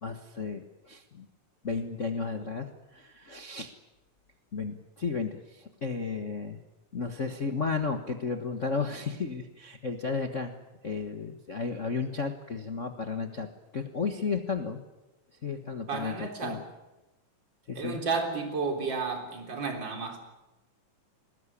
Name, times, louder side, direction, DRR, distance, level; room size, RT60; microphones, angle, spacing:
voice 1, 0.0-1.3 1.6-3.7 4.5-6.6 6.9-10.5 10.8-13.5 13.7-14.8 15.4-16.6 17.7-18.0, left 4 dB, 80° left, 5 dB, 0.6 m, -33 dB
voice 2, 15.9-16.6 17.8-20.2, right 4 dB, 35° right, 4 dB, 4.3 m, -32 dB
22.5 x 20.0 x 10.0 m, 1.0 s
omnidirectional pair, 3.8 m